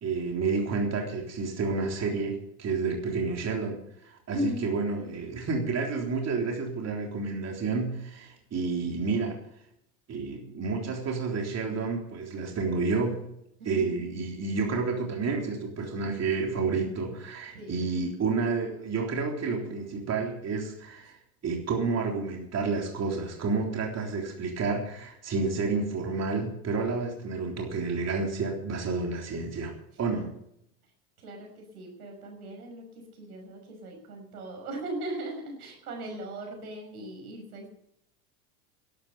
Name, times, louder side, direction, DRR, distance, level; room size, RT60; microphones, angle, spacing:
voice 1, 0.0-3.8 4.0-9.4 10.1-13.2 13.7-21.1 21.4-29.7 30.0-30.3, right 4 dB, 35° right, 1 dB, 3.7 m, -30 dB
voice 2, 4.3-4.8 13.6-14.1 17.5-17.8 31.2-37.7, equal, 85° right, 2 dB, 5.9 m, -38 dB
12.5 x 12.0 x 6.9 m, 0.75 s
hypercardioid pair, 85°, 44 cm